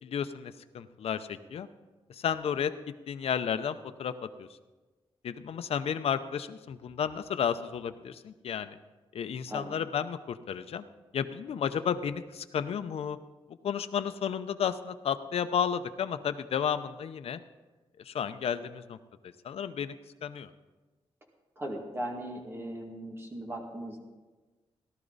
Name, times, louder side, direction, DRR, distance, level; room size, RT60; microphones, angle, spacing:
voice 1, 0.0-1.7 2.1-2.7 3.1-4.1 4.4-4.5 5.2-8.7 9.1-10.8 11.1-13.2 13.6-17.4 18.1-19.0 19.4-19.9 20.2-20.5, left 8 dB, 75° left, 10 dB, 0.6 m, -32 dB
voice 2, 21.6-24.0, right 1 dB, 25° right, 0 dB, 2.2 m, -38 dB
17.5 x 12.0 x 4.0 m, 1.2 s
wide cardioid pair, 175°, 10 cm